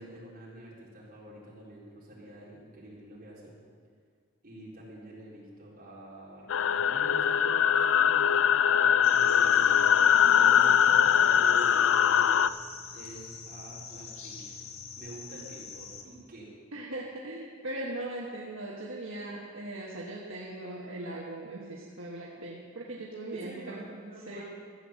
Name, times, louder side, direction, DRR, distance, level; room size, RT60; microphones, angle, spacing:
voice 1, 0.0-3.5 4.4-12.4 12.9-14.4 15.0-16.5 23.3-24.4, right 1 dB, 45° right, -6 dB, 4.2 m, -47 dB
sound 1, 6.5-12.5, left 8 dB, 65° left, 0.3 m, -22 dB
sound 2, 9.0-16.0, left 5 dB, 90° left, 1.5 m, -44 dB
voice 2, 16.7-24.0 24.3-24.4, right 1 dB, 65° right, -4 dB, 1.4 m, -39 dB
14.0 x 8.1 x 7.6 m, 2.1 s
head